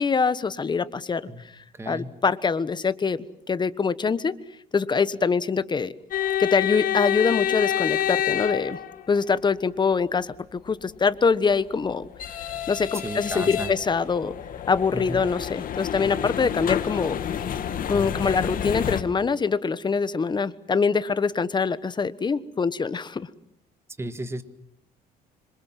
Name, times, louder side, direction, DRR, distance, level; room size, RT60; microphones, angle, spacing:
voice 1, 0.0-1.2 1.9-4.3 4.7-5.9 6.4-8.8 9.1-12.1 12.7-14.4 14.7-17.2 17.9-23.3, left 5 dB, 25° left, 16 dB, 1.3 m, -24 dB
voice 2, 1.7-2.1 12.9-13.7 14.9-15.2 24.0-24.4, right 1 dB, 15° right, 11 dB, 1.9 m, -33 dB
sound 1, 6.1-9.3 11.3-19.0, left 10 dB, 55° left, 2.3 m, -28 dB
26.5 x 26.0 x 7.6 m, 0.73 s
cardioid pair, 110°, 17 cm